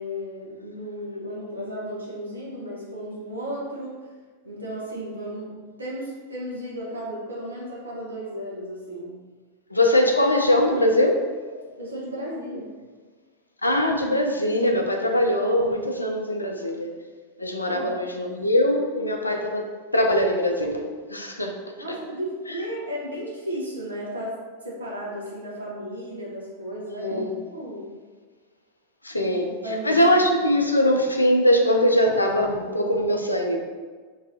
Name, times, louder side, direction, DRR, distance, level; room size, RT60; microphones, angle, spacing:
voice 1, 0.0-3.9 4.4-9.2 11.8-12.7 17.7-18.1 21.8-27.3 27.5-27.9 29.2-29.4 29.6-30.2, equal, 75° right, -4 dB, 1.0 m, -34 dB
voice 2, 9.7-11.2 13.6-16.9 17.4-19.6 19.9-21.6 22.5-22.6 27.0-27.2 29.0-29.6 29.8-33.6, left 1 dB, 85° left, 2 dB, 0.4 m, -21 dB
3.0 x 2.7 x 3.9 m, 1.5 s
figure-of-eight pair, 90°, 0 cm